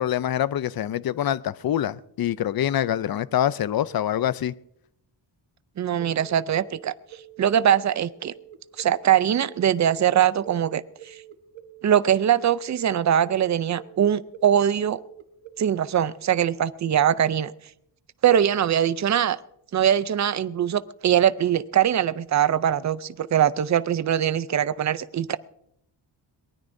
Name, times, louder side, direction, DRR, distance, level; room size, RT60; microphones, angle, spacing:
voice 1, 0.0-4.5, left 11 dB, 55° left, 0.5 m, -25 dB
voice 2, 5.8-6.9 7.4-8.3 8.8-11.2 11.8-15.0 15.6-17.5 18.2-19.4 19.7-25.4, right 10 dB, 40° right, 0.5 m, -22 dB
sound 1, 6.0-15.8, right 11 dB, 80° right, 1.3 m, -46 dB
23.0 x 19.5 x 2.6 m
wide cardioid pair, 165°, 45 cm